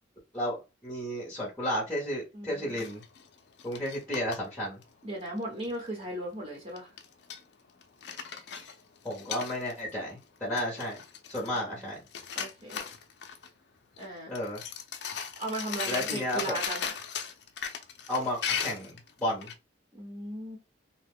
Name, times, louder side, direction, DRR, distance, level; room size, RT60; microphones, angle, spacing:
voice 1, 0.8-3.0 3.6-4.8 9.0-11.0 11.3-12.0 14.3-14.6 15.9-16.6 18.1-19.5, left 1 dB, 5° left, -4 dB, 0.8 m, -32 dB
voice 2, 2.3-2.8 5.0-6.9 11.4-11.9 12.3-12.9 14.0-14.3 15.4-16.9 19.9-20.6, right 1 dB, 30° right, -3 dB, 1.0 m, -37 dB
sound 1, 2.8-4.4 4.8-4.9 5.2-5.7 6.8-7.4 7.8-9.9 10.2-10.3 10.6-11.8 12.1-13.5 13.9-14.1 14.3-19.5, left 7 dB, 60° left, 0.5 m, -37 dB
2.9 x 2.2 x 3.5 m, 0.27 s
head